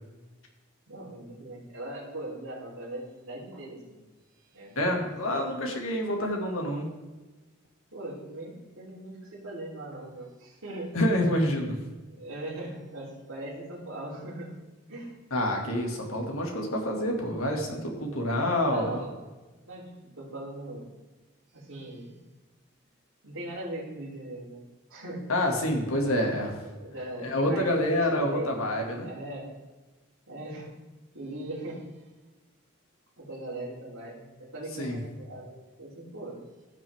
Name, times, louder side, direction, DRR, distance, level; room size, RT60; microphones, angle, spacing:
voice 1, 0.9-4.0 4.3-4.8 5.2-5.5 7.9-10.9 12.1-14.5 14.9-15.1 18.7-19.1 19.7-20.9 21.5-22.2 23.2-24.6 24.9-25.3 26.8-27.7 28.1-28.5 29.0-29.5 30.3-30.8 31.1-32.0 33.2-36.4, right 1 dB, 85° right, -10 dB, 3.5 m, -40 dB
voice 2, 4.8-6.9 10.9-11.8 15.3-19.0 25.3-26.5 27.2-29.1 34.8-35.0, left 1 dB, 90° left, 1 dB, 2.2 m, -27 dB
16.0 x 6.3 x 3.6 m, 1.2 s
head